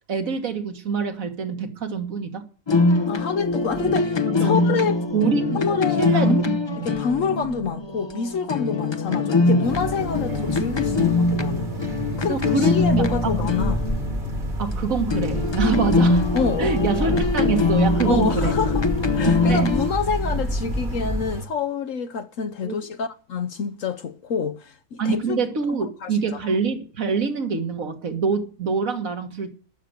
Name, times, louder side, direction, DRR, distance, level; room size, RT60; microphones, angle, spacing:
voice 1, 0.1-2.5 4.4-4.6 5.1-6.9 12.3-13.4 14.6-16.2 16.6-18.5 19.2-19.7 22.6-22.8 25.0-29.5, right 5 dB, 70° right, 1.9 m, -25 dB
sound 1, 2.7-14.7 15.1-19.9, left 3 dB, 25° left, 0.6 m, -23 dB
voice 2, 3.1-5.0 5.5-6.5 6.8-11.7 12.2-13.8 15.6-15.8 16.3-16.8 18.0-18.8 19.1-25.4 25.7-26.1, left 5 dB, 65° left, 1.1 m, -27 dB
sound 2, 9.6-21.5, right 3 dB, 35° right, 1.5 m, -34 dB
sound 3, 12.8-21.3, left 1 dB, 10° left, 1.2 m, -29 dB
12.5 x 6.7 x 8.0 m
omnidirectional pair, 1.5 m